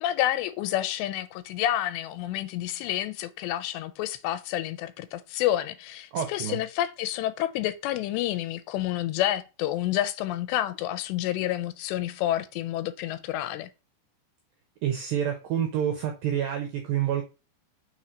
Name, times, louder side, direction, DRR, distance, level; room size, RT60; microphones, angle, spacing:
voice 1, 0.0-13.7, left 13 dB, 85° left, 2.6 m, -29 dB
voice 2, 6.1-6.6 14.8-17.2, right 10 dB, 80° right, 2.0 m, -28 dB
6.1 x 4.3 x 5.0 m
omnidirectional pair, 5.1 m